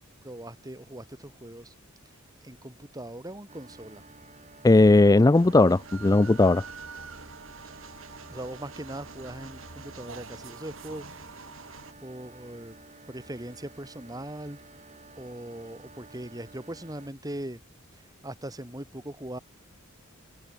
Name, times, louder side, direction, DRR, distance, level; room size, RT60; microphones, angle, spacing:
voice 1, 0.2-1.7 2.4-4.0 7.6-7.8 8.3-11.1 12.0-12.8 13.1-14.6 15.2-17.6 18.2-19.4, right 1 dB, 20° right, 2.8 m, -40 dB
sound 1, 3.5-17.1, right 3 dB, 35° right, 5.9 m, -52 dB
voice 2, 4.6-6.6, left 2 dB, 15° left, 0.3 m, -18 dB
sound 2, 5.3-11.9, right 4 dB, 70° right, 3.1 m, -45 dB
head